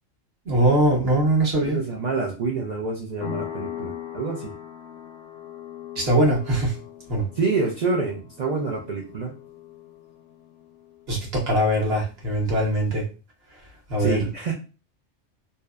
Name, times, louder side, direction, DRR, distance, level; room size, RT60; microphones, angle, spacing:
voice 1, 0.5-1.8 6.0-6.7 7.1-7.3 11.1-13.0 13.9-14.2, right 1 dB, 55° right, -1 dB, 1.1 m, -21 dB
voice 2, 1.6-4.5 7.3-9.3 14.0-14.5, right 4 dB, 80° right, 0 dB, 0.3 m, -27 dB
sound 1, 3.2-11.5, left 10 dB, 65° left, 0.7 m, -40 dB
2.7 x 2.0 x 2.2 m, 0.33 s
omnidirectional pair, 1.3 m